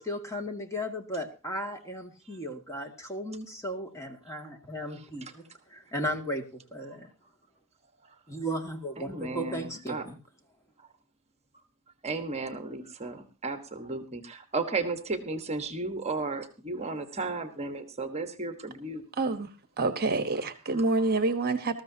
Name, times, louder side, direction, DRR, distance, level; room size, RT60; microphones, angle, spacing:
voice 1, 0.0-5.4 5.7-6.4 6.7-7.1 8.3-10.2, equal, 15° left, 3 dB, 2.2 m, -35 dB
voice 2, 9.0-10.1 12.0-19.0, right 3 dB, 30° right, 7 dB, 1.4 m, -34 dB
voice 3, 19.2-19.5 19.8-21.8, right 3 dB, 45° right, 9 dB, 1.2 m, -27 dB
20.0 x 14.0 x 2.8 m, 0.31 s
head